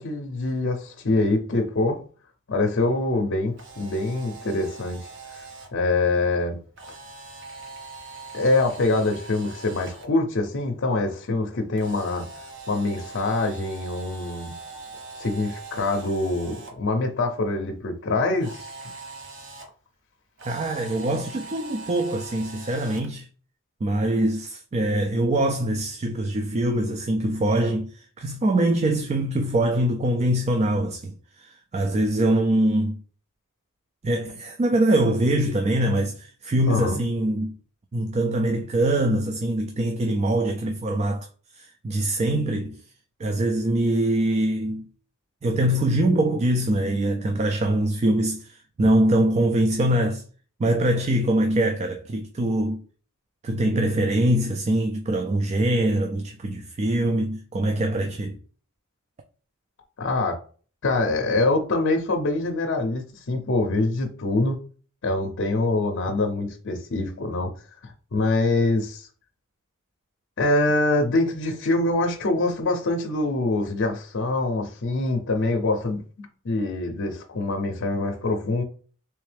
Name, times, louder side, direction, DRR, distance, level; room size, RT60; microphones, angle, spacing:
voice 1, 0.0-2.0 2.5-5.0 5.7-6.6 8.3-12.3 12.7-14.5 15.2-18.7 36.7-37.0 60.0-60.4 60.8-64.6 65.0-67.5 67.8-69.1 70.4-78.6, left 2 dB, 60° left, 0.6 m, -24 dB
Camera, 3.5-5.7 6.8-10.1 11.8-16.7 18.4-19.7 20.4-23.1, right 3 dB, 60° right, 0.9 m, -42 dB
voice 2, 20.4-23.3 23.8-33.0 34.0-37.6 37.9-41.3 41.5-42.8 43.2-44.8 45.4-50.2 50.6-52.8 53.4-58.4, right 1 dB, 30° right, 0.3 m, -23 dB
3.5 x 3.2 x 3.3 m
head